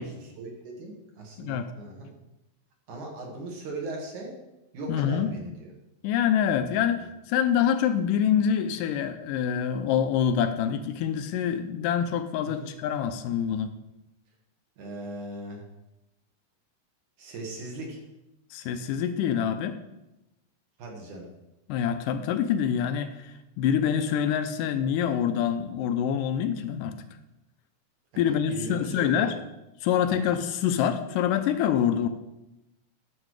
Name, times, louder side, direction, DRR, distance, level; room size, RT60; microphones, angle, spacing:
voice 1, 0.0-2.1 2.9-4.4 4.7-5.7 7.0-7.1 12.4-12.7 14.8-15.6 17.2-18.0 20.8-21.3 28.1-29.3 30.1-30.2, right 2 dB, 60° right, 0 dB, 3.0 m, -39 dB
voice 2, 1.4-1.7 4.9-5.3 6.0-13.7 18.5-19.8 21.7-27.0 28.2-29.3 29.8-32.1, left 8 dB, 80° left, 10 dB, 2.1 m, -26 dB
11.0 x 7.3 x 4.8 m, 0.93 s
omnidirectional pair, 4.1 m